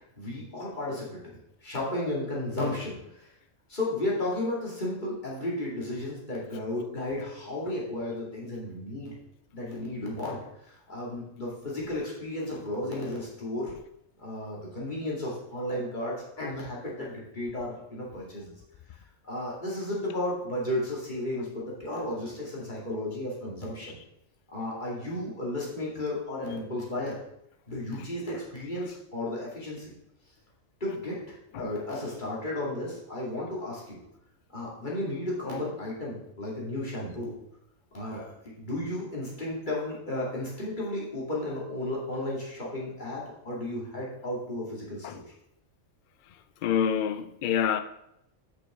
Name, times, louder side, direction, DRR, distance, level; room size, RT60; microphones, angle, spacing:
voice 1, 0.2-3.3 3.7-9.1 9.5-13.7 14.2-18.5 19.3-24.0 24.5-27.2 27.7-29.9 30.8-31.2 31.5-34.0 34.5-37.4 37.9-45.2, left 1 dB, 35° left, 2.4 m, -33 dB
voice 2, 46.6-47.8, left 8 dB, 85° left, 0.4 m, -26 dB
8.7 x 6.2 x 3.6 m
omnidirectional pair, 1.4 m